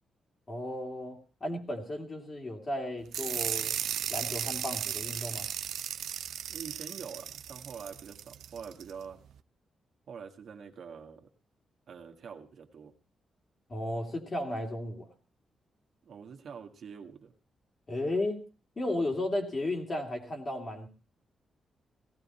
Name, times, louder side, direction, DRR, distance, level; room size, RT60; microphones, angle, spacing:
voice 1, 0.5-3.7 4.1-5.5 13.7-15.1 17.9-18.4 18.8-20.9, left 1 dB, 30° left, 2 dB, 2.7 m, -34 dB
sound 1, 3.1-8.9, right 10 dB, 90° right, 0.7 m, -35 dB
voice 2, 6.5-9.2 10.1-11.3 11.9-12.9 16.0-17.3, right 6 dB, 60° right, 3 dB, 1.8 m, -45 dB
17.0 x 14.5 x 4.3 m, 0.35 s
cardioid pair, 130°, 0 cm